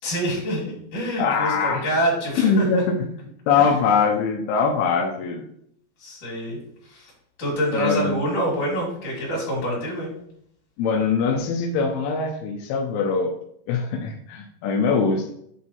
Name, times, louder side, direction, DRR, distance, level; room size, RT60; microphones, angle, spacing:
voice 1, 0.0-2.8 3.6-3.7 6.0-6.6 6.9-7.1 7.4-10.1, equal, 45° left, -5 dB, 4.1 m, -26 dB
voice 2, 1.2-1.8 2.4-3.0 3.5-5.4 7.7-8.2 10.8-13.3 13.7-15.3, left 5 dB, 80° left, 3 dB, 2.2 m, -22 dB
8.5 x 3.6 x 4.3 m, 0.69 s
omnidirectional pair, 5.3 m